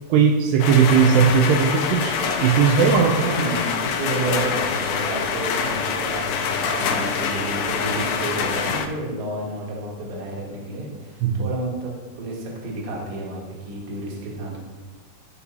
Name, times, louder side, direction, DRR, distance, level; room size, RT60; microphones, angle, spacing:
voice 1, 0.1-3.3 11.2-11.5, right 6 dB, 85° right, 4 dB, 2.5 m, -18 dB
sound 1, 0.6-8.9, left 6 dB, 80° left, 2.7 m, -25 dB
voice 2, 3.2-14.6, right 1 dB, 50° right, -3 dB, 1.9 m, -31 dB
13.0 x 5.4 x 2.8 m, 1.3 s
omnidirectional pair, 4.9 m